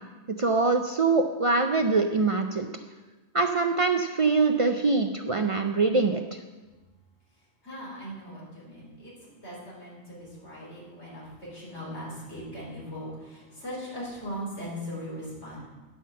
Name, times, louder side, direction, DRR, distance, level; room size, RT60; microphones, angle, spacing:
voice 1, 0.4-2.7 3.3-6.2, right 3 dB, 60° right, 5 dB, 0.3 m, -23 dB
voice 2, 7.6-9.1 9.4-15.6, equal, 70° left, -6 dB, 4.4 m, -39 dB
9.3 x 5.7 x 7.4 m, 1.2 s
omnidirectional pair, 1.2 m